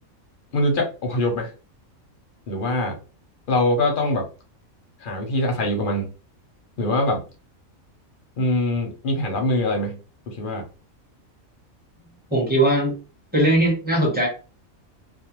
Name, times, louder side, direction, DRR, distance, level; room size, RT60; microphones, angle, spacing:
voice 1, 0.5-1.5 2.5-3.0 3.5-4.3 5.0-6.1 6.8-7.2 8.4-10.0 10.3-10.6, left 1 dB, 50° left, 2 dB, 0.7 m, -23 dB
voice 2, 12.3-13.0 13.3-14.3, right 1 dB, 10° right, -2 dB, 0.7 m, -19 dB
2.4 x 2.1 x 2.9 m, 0.33 s
omnidirectional pair, 1.5 m